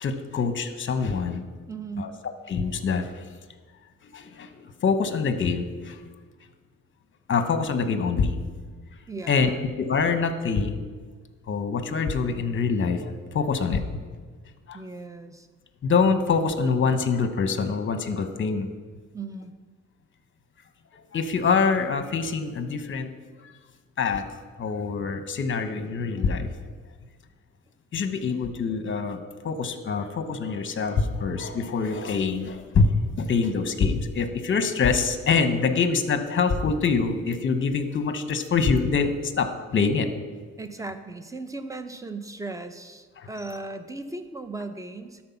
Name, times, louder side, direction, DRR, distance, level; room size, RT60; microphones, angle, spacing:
voice 1, 0.0-1.5 2.0-3.2 4.0-6.1 7.3-8.4 9.3-9.5 9.8-10.8 11.5-14.0 14.7-14.8 15.8-18.7 20.9-23.1 23.4-23.5 24.0-24.2 24.6-26.5 27.9-29.2 29.4-40.1 43.2-43.3, left 5 dB, 40° left, 8 dB, 1.0 m, -25 dB
voice 2, 1.7-2.2 9.1-9.7 14.7-15.5 19.1-19.5 40.6-45.2, right 3 dB, 10° right, 9 dB, 0.7 m, -37 dB
12.5 x 4.4 x 5.8 m, 1.5 s
cardioid pair, 90°, 30 cm